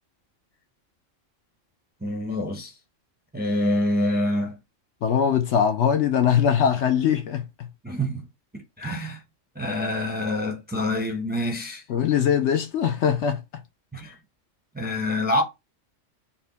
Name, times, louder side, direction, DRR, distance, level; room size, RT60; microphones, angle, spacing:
voice 1, 2.0-2.7 3.3-4.6 7.8-8.3 8.5-9.2 9.6-11.8 13.9-14.2 14.7-15.4, left 1 dB, 10° right, 0.6 m, -26 dB
voice 2, 5.0-7.7 11.9-13.4, left 8 dB, 70° left, 0.8 m, -21 dB
4.1 x 2.2 x 3.9 m
omnidirectional pair, 1.3 m